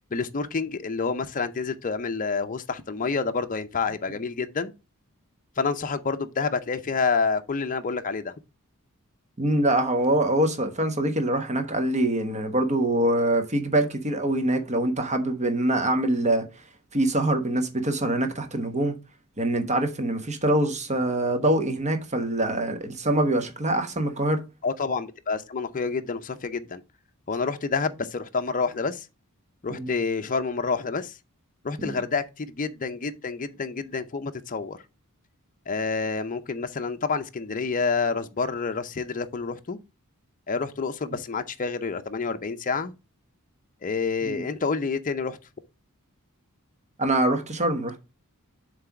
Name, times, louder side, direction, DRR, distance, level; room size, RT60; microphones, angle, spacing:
voice 1, 0.1-4.7 5.6-8.3 24.6-26.8 27.3-29.1 29.6-31.2 31.6-34.8 35.7-39.8 40.5-42.9 43.8-45.4, left 4 dB, 35° left, 0.6 m, -28 dB
voice 2, 9.4-16.4 16.9-18.9 19.4-24.4 29.7-29.9 31.8-31.9 44.3-44.4 47.0-48.0, right 1 dB, 30° right, 1.1 m, -24 dB
7.6 x 3.3 x 5.9 m
head